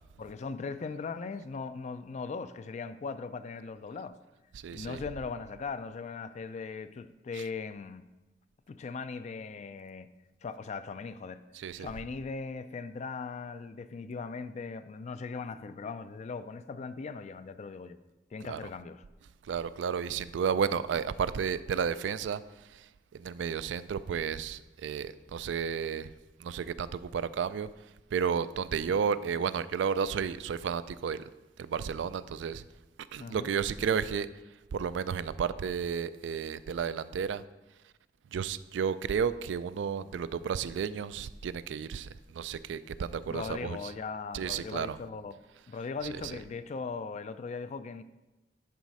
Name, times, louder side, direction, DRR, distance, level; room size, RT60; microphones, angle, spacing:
voice 1, 0.2-4.1 4.7-8.0 8.7-10.1 10.4-11.4 11.8-18.0 18.3-19.0 33.2-33.5 43.3-45.4 45.7-48.0, left 4 dB, 40° left, 0.3 m, -39 dB
voice 2, 4.5-5.0 11.5-11.9 18.5-18.6 19.5-26.1 26.4-27.7 28.1-31.3 31.6-32.6 33.1-34.3 34.7-37.4 38.3-43.8 44.3-45.0 46.2-46.3, right 7 dB, 80° right, 0.3 m, -32 dB
10.5 x 4.1 x 4.7 m
head